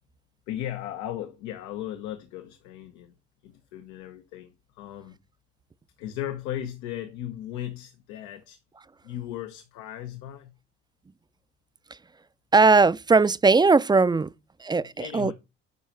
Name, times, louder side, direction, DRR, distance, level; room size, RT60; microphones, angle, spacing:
voice 1, 0.5-3.1 3.4-5.2 6.0-8.6 9.0-10.5 14.8-15.3, left 11 dB, 90° left, 1.0 m, -36 dB
voice 2, 12.5-14.3 14.6-15.3, right 4 dB, 15° right, 0.4 m, -19 dB
9.5 x 5.4 x 4.4 m
supercardioid pair, 65°, 29 cm